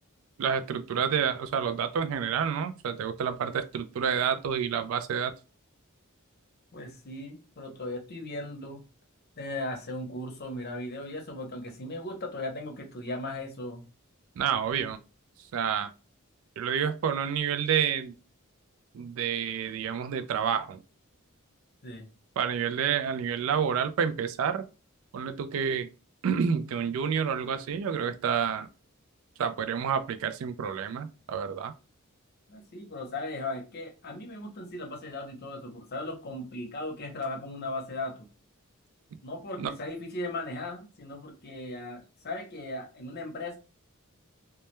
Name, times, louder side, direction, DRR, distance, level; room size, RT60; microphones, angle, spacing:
voice 1, 0.4-5.3 14.4-15.0 15.5-15.9 16.6-18.2 18.9-20.8 22.4-24.6 25.1-25.9 26.2-28.7 29.4-31.7 39.6-39.7, right 7 dB, 70° right, 0.3 m, -29 dB
voice 2, 6.7-8.8 9.4-13.8 21.8-22.1 32.5-38.2 39.2-43.6, left 2 dB, 50° left, 0.7 m, -37 dB
2.2 x 2.1 x 2.9 m
head